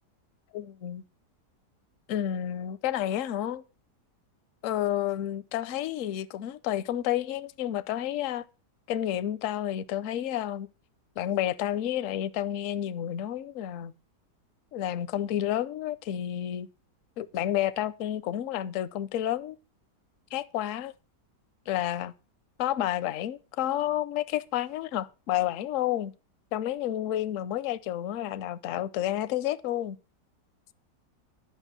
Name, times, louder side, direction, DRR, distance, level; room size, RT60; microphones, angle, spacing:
voice 1, 0.5-1.0 2.1-3.6 4.6-8.4 8.9-10.7 11.2-13.9 14.7-16.7 17.2-19.6 20.3-20.9 21.7-22.1 22.6-26.1 26.5-30.0, left 12 dB, 60° left, 0.9 m, -30 dB
11.0 x 5.9 x 7.4 m
omnidirectional pair, 1.8 m